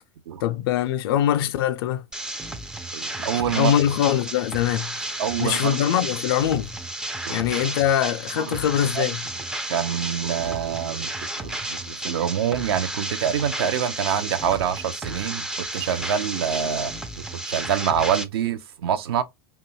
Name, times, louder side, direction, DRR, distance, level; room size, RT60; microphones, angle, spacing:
voice 1, 0.4-2.0 3.5-5.1 5.4-6.7 7.3-9.2, left 11 dB, 60° left, 0.4 m, -23 dB
sound 1, 2.1-18.2, right 1 dB, 5° right, 0.3 m, -33 dB
voice 2, 2.9-3.7 5.2-5.8 7.3-7.4 8.4-8.7 9.0-9.1 9.7-15.5 15.7-19.2, right 9 dB, 65° right, 0.4 m, -26 dB
2.5 x 2.2 x 2.7 m
figure-of-eight pair, 85°, 14 cm